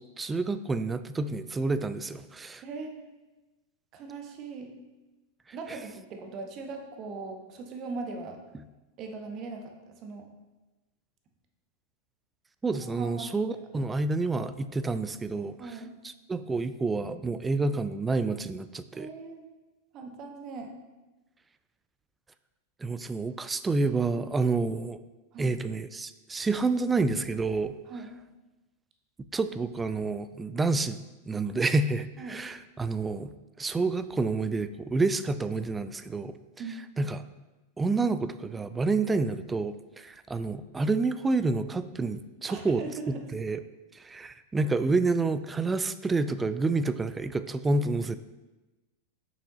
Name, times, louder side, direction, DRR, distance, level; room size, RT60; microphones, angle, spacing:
voice 1, 0.0-2.6 12.6-15.8 16.0-19.1 22.8-25.0 25.4-27.7 29.3-31.0 31.3-33.3 33.6-36.4 37.0-37.2 37.8-42.8 43.3-43.6 43.9-48.2, right 3 dB, 15° right, 13 dB, 0.3 m, -29 dB
voice 2, 2.6-2.9 3.9-4.7 5.5-8.4 9.0-10.2 12.8-13.3 15.6-15.9 18.9-19.4 19.9-20.7 25.3-25.5 27.9-28.1 32.2-32.4 36.6-36.8 42.5-43.2, right 4 dB, 35° right, 4 dB, 1.0 m, -40 dB
6.7 x 5.8 x 2.9 m, 1.1 s
figure-of-eight pair, 90°, 0 cm